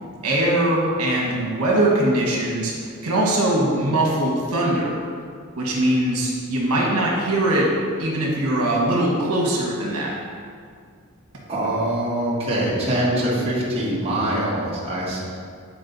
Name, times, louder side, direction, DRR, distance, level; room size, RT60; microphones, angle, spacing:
voice 1, 0.2-2.7 3.0-4.9 5.6-7.7 8.0-10.1, right 1 dB, 80° right, -3 dB, 1.4 m, -21 dB
voice 2, 11.5-15.2, right 1 dB, 30° right, -6 dB, 1.4 m, -23 dB
8.6 x 4.4 x 4.0 m, 2.1 s
head